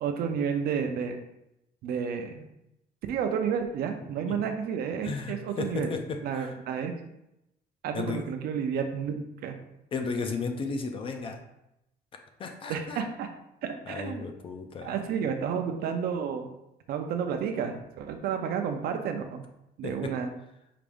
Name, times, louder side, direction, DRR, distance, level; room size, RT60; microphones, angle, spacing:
voice 1, 0.0-1.2 1.8-2.5 3.1-6.0 6.2-6.9 7.8-9.6 12.7-13.3 13.6-14.2 14.8-16.5 16.9-19.4 19.8-20.3, right 7 dB, 65° right, 6 dB, 0.5 m, -31 dB
voice 2, 5.0-6.5 7.9-8.2 9.9-11.4 12.4-13.0 13.9-14.9 19.8-20.1, left 4 dB, 30° left, 5 dB, 0.4 m, -34 dB
4.8 x 2.5 x 3.5 m, 0.85 s
cardioid pair, 170°, 17 cm